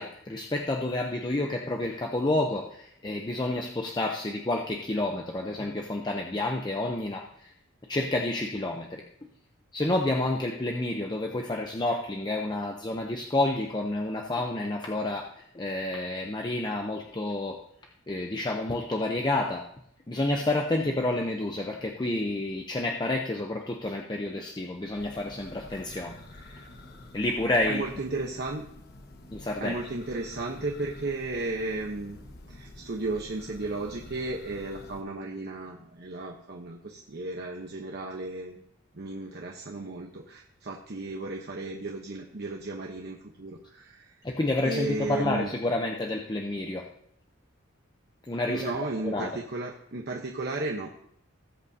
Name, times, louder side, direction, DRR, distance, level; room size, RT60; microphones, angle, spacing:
voice 1, 0.0-7.5 7.9-9.3 9.7-17.6 18.1-19.7 20.1-26.7 27.1-27.8 29.3-29.8 44.2-46.9 48.3-48.7 49.0-49.4, left 2 dB, 20° left, 2 dB, 0.6 m, -29 dB
Church bell, 24.7-35.0, left 1 dB, 50° left, 1.2 m, -48 dB
voice 2, 27.7-28.6 29.6-32.2 32.5-38.6 38.9-44.1 44.6-45.5 48.5-50.9, right 2 dB, 50° right, 0 dB, 0.9 m, -34 dB
18.5 x 8.1 x 2.8 m, 0.70 s
head